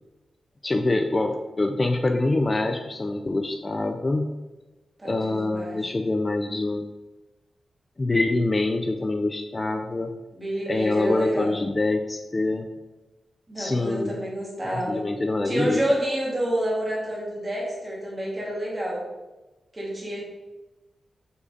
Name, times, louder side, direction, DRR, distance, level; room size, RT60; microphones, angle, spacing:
voice 1, 0.6-4.3 5.0-6.9 8.0-10.2 10.7-12.7 13.6-14.2 14.6-15.8, left 2 dB, 25° left, 5 dB, 0.3 m, -25 dB
voice 2, 5.0-5.8 10.3-11.5 13.5-15.0 15.4-19.0 19.7-20.2, right 1 dB, 20° right, -5 dB, 1.8 m, -28 dB
6.5 x 3.8 x 3.8 m, 1.1 s
wide cardioid pair, 165°, 0 cm